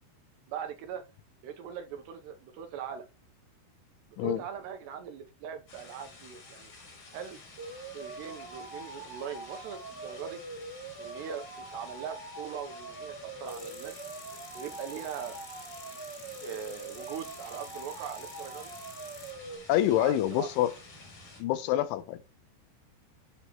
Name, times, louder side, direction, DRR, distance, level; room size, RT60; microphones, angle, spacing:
voice 1, 0.5-1.0 1.4-3.1 4.2-6.7 7.1-7.4 7.9-10.4 11.0-14.0 14.5-15.4 16.4-18.7 19.8-20.5, right 8 dB, 75° right, 2.8 m, -41 dB
sound 1, 5.7-21.4, left 3 dB, 40° left, 4.7 m, -51 dB
sound 2, 7.6-19.6, right 3 dB, 55° right, 1.2 m, -44 dB
sound 3, 13.5-19.3, left 1 dB, 15° left, 1.7 m, -50 dB
voice 2, 19.7-20.7 21.4-22.2, left 13 dB, 85° left, 3.2 m, -26 dB
11.0 x 6.6 x 3.1 m
omnidirectional pair, 5.4 m